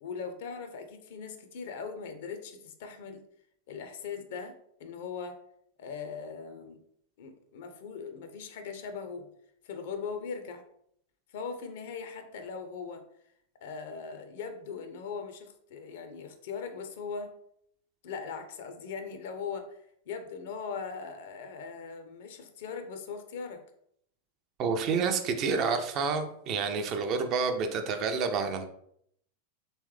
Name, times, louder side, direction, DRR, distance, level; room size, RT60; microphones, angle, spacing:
voice 1, 0.0-3.2 3.7-4.5 4.8-5.4 5.8-6.8 7.2-9.3 9.6-10.6 11.3-13.1 13.6-17.3 18.0-23.6, left 5 dB, 55° left, 7 dB, 0.5 m, -40 dB
voice 2, 24.6-28.6, right 5 dB, 35° right, 6 dB, 0.5 m, -29 dB
3.2 x 3.1 x 3.1 m, 0.70 s
figure-of-eight pair, 90°, 0 cm